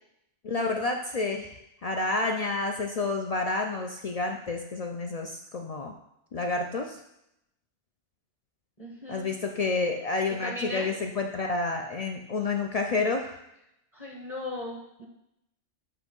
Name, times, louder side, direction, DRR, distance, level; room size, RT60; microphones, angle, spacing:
voice 1, 0.4-1.5 1.8-5.9 6.3-7.0 9.1-13.4, left 3 dB, 70° left, 3 dB, 0.3 m, -29 dB
voice 2, 8.8-9.3 10.4-11.0 13.9-15.1, left 1 dB, 30° left, -2 dB, 1.0 m, -37 dB
7.7 x 3.1 x 5.2 m, 0.82 s
omnidirectional pair, 1.2 m